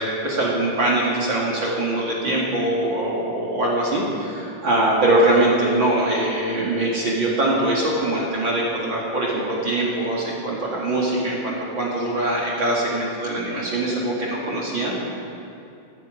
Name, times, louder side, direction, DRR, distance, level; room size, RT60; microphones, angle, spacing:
voice 1, 0.0-15.0, right 1 dB, 45° right, -4 dB, 1.6 m, -22 dB
14.0 x 12.0 x 4.9 m, 2.6 s
omnidirectional pair, 4.9 m